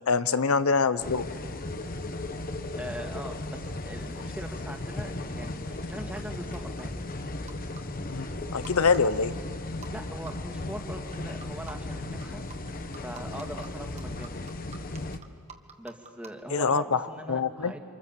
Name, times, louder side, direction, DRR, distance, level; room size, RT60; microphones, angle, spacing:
voice 1, 0.1-1.3 8.1-9.3 16.5-17.0 17.3-17.7, left 5 dB, 75° left, 13 dB, 0.8 m, -25 dB
sound 1, 1.0-15.2, left 2 dB, 40° left, 1.1 m, -36 dB
sound 2, 1.4-1.7 2.0-3.9 4.1-4.2 5.7-6.8 7.2-7.8 8.1-8.3 8.6-9.1 9.3-9.4 9.8-9.9 10.3-10.4 11.1-16.4, right 6 dB, 30° right, 1.7 m, -48 dB
voice 2, 2.7-7.1 9.9-12.4 13.0-14.4 15.8-17.8, right 1 dB, 5° right, 3 dB, 2.0 m, -41 dB
29.5 x 26.5 x 7.5 m, 2.2 s
head